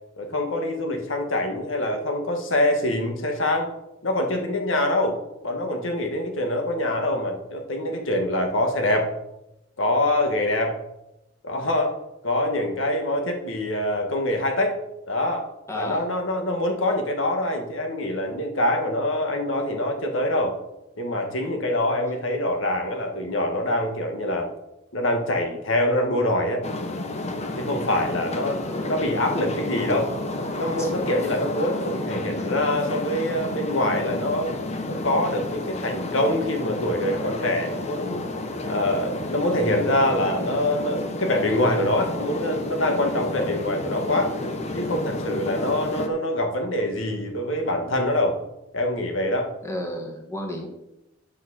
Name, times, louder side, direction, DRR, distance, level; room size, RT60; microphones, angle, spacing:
voice 1, 0.2-3.7 4.0-9.1 9.8-10.8 11.4-12.0 12.2-14.8 15.1-15.5 15.7-20.6 21.0-24.5 24.9-26.6 27.6-28.6 28.9-30.1 30.5-34.5 34.9-38.2 38.7-44.3 44.7-48.4 48.7-49.5, left 1 dB, 80° left, 4 dB, 1.6 m, -25 dB
voice 2, 15.7-16.1 28.4-28.9 30.8-30.9 49.6-50.7, left 1 dB, 15° left, 0 dB, 1.8 m, -33 dB
sound 1, 26.6-46.1, left 2 dB, 35° left, 1.0 m, -31 dB
8.9 x 6.0 x 6.2 m, 0.88 s
head